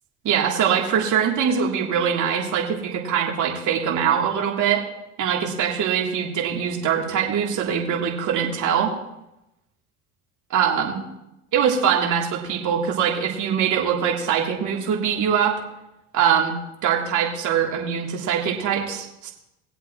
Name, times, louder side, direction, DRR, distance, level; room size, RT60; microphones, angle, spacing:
voice 1, 0.2-4.8 5.2-8.9 10.5-11.0 11.5-15.6 16.1-16.6 16.8-19.3, right 8 dB, 55° right, -1 dB, 3.4 m, -22 dB
21.5 x 8.0 x 3.2 m, 0.89 s
hypercardioid pair, 75°, 36 cm